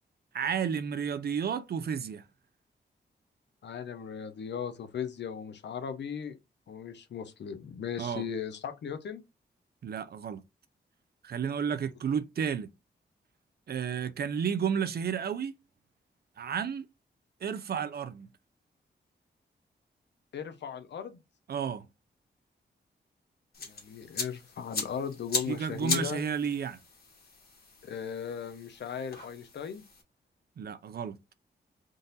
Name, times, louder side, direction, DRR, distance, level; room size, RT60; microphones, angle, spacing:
voice 1, 0.3-2.2 8.0-8.3 9.8-10.4 11.2-12.7 13.7-15.6 16.4-16.9 17.4-18.3 21.5-21.9 25.5-26.8 30.6-31.3, right 7 dB, 60° right, 0.5 m, -32 dB
voice 2, 3.6-6.3 6.7-9.2 20.3-21.2 23.6-26.2 27.8-29.8, left 7 dB, 75° left, 0.7 m, -37 dB
sound 1, 23.5-30.0, left 4 dB, 55° left, 1.8 m, -38 dB
3.8 x 2.6 x 3.9 m
cardioid pair, 90°, 18 cm